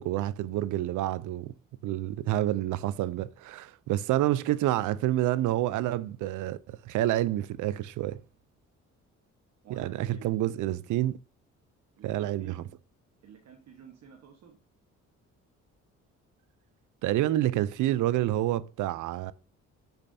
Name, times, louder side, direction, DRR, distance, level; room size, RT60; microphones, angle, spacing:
voice 1, 0.0-1.5 1.8-8.2 9.7-11.2 12.0-12.6 17.0-19.3, right 14 dB, 80° right, 0.5 m, -28 dB
voice 2, 9.6-10.3 12.0-12.6 13.2-14.6, right 7 dB, 65° right, 1.3 m, -50 dB
6.6 x 6.0 x 2.7 m
cardioid pair, 90°, 30 cm